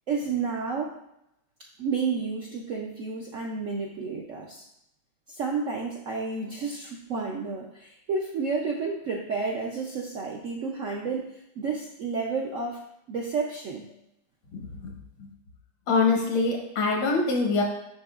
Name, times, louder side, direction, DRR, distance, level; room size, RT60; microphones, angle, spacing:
voice 1, 0.1-0.9 1.8-4.6 5.3-12.8 13.1-13.9, right 4 dB, 70° right, -1 dB, 0.7 m, -31 dB
voice 2, 14.5-14.9 15.9-17.6, left 4 dB, 80° left, 0 dB, 1.9 m, -24 dB
7.0 x 5.8 x 2.4 m, 0.82 s
omnidirectional pair, 2.0 m